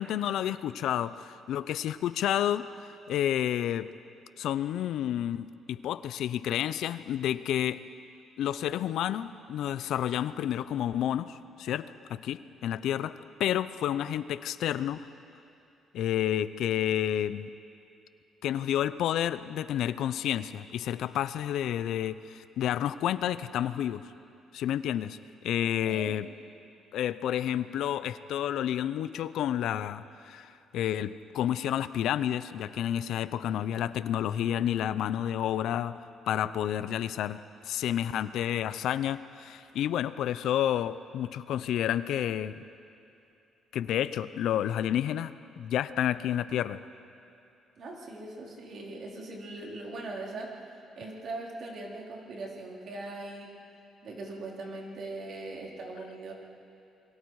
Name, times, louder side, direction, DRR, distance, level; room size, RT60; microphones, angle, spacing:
voice 1, 0.0-2.7 3.1-3.9 4.4-7.8 8.4-15.1 15.9-17.5 18.4-24.0 24.5-25.2 25.4-26.3 26.9-36.0 36.3-37.4 37.6-42.6 43.7-46.8, left 11 dB, 70° left, 14 dB, 0.6 m, -30 dB
voice 2, 47.8-50.5 51.0-53.5 54.0-56.3, right 2 dB, 50° right, -2 dB, 3.8 m, -40 dB
28.5 x 23.0 x 4.8 m, 2.8 s
cardioid pair, 140°, 0 cm